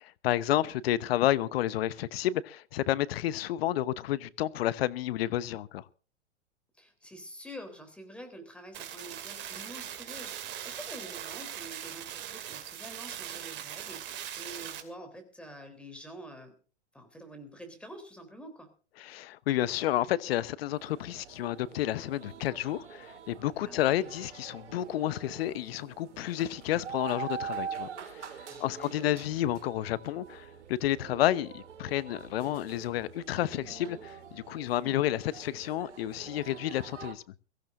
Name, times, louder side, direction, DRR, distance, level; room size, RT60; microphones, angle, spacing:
voice 1, 0.2-5.8 19.0-28.3 28.6-37.2, left 13 dB, 55° left, 1.0 m, -30 dB
voice 2, 6.8-16.5 16.9-18.7 23.6-24.1 28.5-29.3 34.8-35.2, equal, 5° left, 3.5 m, -47 dB
sound 1, 8.7-14.8, right 10 dB, 30° right, 2.7 m, -40 dB
sound 2, 20.7-37.1, right 7 dB, 80° right, 3.1 m, -44 dB
23.0 x 15.0 x 2.6 m
hypercardioid pair, 125°, 35 cm